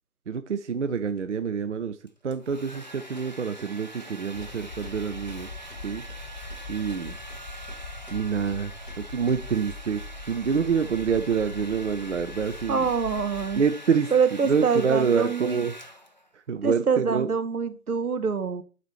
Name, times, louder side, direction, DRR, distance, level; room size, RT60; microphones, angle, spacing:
voice 1, 0.3-5.5 5.8-6.0 6.7-7.2 8.1-12.9 13.6-14.1 14.4-15.7 16.3-17.3, right 6 dB, 55° right, 9 dB, 0.5 m, -27 dB
Domestic sounds home sounds, 2.1-16.3, equal, 30° left, 0.4 m, -44 dB
sound 1, 2.7-2.9 3.2-3.3 3.6-3.7 4.0-4.1 4.4-4.5 4.8-5.0 5.3-5.4 5.7-5.8 6.1-6.2 6.5-6.6 6.9-7.0 7.3-7.4 7.7-7.8 8.1-8.2 8.5-8.6 8.9-9.0 9.3-9.4, right 2 dB, 5° right, 1.0 m, -50 dB
sound 2, 4.3-13.7, left 2 dB, 85° left, 1.1 m, -41 dB
voice 2, 12.7-13.6 14.1-15.6 16.6-18.6, right 5 dB, 75° right, 10 dB, 1.1 m, -25 dB
12.0 x 4.1 x 3.0 m, 0.37 s
figure-of-eight pair, 145°, 45 cm